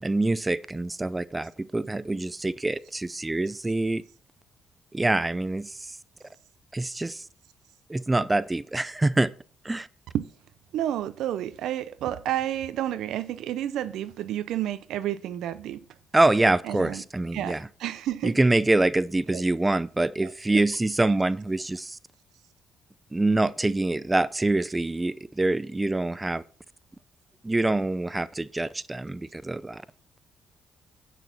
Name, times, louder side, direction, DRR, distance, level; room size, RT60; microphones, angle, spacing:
voice 1, 0.0-4.0 4.9-6.0 6.7-7.2 7.9-9.3 9.6-9.9 16.1-17.7 18.2-22.0 23.1-26.4 27.4-29.8, right 2 dB, 15° right, 0.5 m, -25 dB
voice 2, 10.7-15.8 16.6-17.0 17.3-18.4 19.3-19.4 20.2-20.7, right 12 dB, 80° right, 0.6 m, -30 dB
9.1 x 6.2 x 5.7 m
cardioid pair, 90°, 0 cm